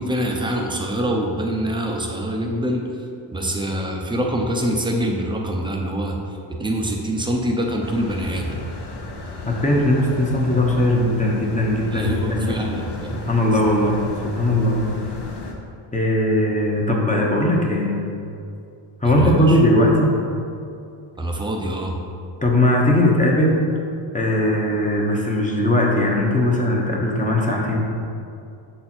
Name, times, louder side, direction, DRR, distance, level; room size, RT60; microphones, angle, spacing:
voice 1, 0.0-8.6 11.9-13.3 19.0-19.6 21.2-22.0, equal, 10° right, 0 dB, 0.8 m, -25 dB
sound 1, 7.8-15.5, left 2 dB, 55° left, 1.1 m, -35 dB
voice 2, 9.5-12.8 13.1-14.9 15.9-18.1 19.0-20.1 22.4-23.6 24.1-27.8, left 1 dB, 15° left, -2 dB, 1.0 m, -19 dB
6.1 x 4.4 x 4.3 m, 2.5 s
cardioid pair, 95°, 48 cm